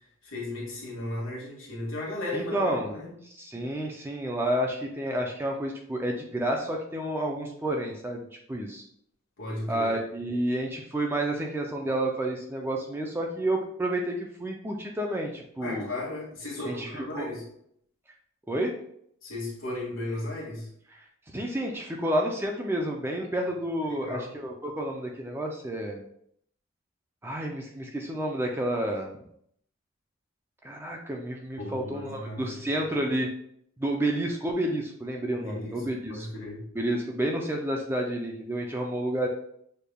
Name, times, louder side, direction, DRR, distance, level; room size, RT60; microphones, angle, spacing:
voice 1, 0.2-3.1 9.4-9.9 15.6-17.4 19.2-20.7 23.9-24.3 31.6-32.6 35.3-36.6, left 1 dB, 65° left, -3 dB, 1.7 m, -35 dB
voice 2, 2.3-2.9 3.4-8.8 9.7-15.9 16.7-17.3 18.5-18.7 20.9-21.0 21.3-26.1 27.2-29.2 30.6-33.3 33.8-36.3 36.8-39.3, right 1 dB, 10° right, 1 dB, 0.4 m, -30 dB
6.4 x 3.4 x 2.2 m, 0.69 s
head